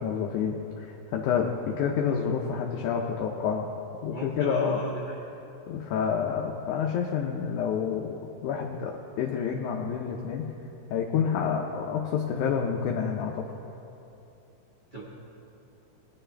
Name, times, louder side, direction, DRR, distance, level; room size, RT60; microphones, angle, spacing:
voice 1, 0.0-3.7 4.0-4.8 5.7-10.5 10.9-13.4, left 7 dB, 80° left, 0 dB, 2.2 m, -28 dB
voice 2, 4.1-5.2 14.9-15.0, right 3 dB, 40° right, -5 dB, 0.7 m, -36 dB
20.0 x 10.0 x 3.4 m, 2.9 s
omnidirectional pair, 3.5 m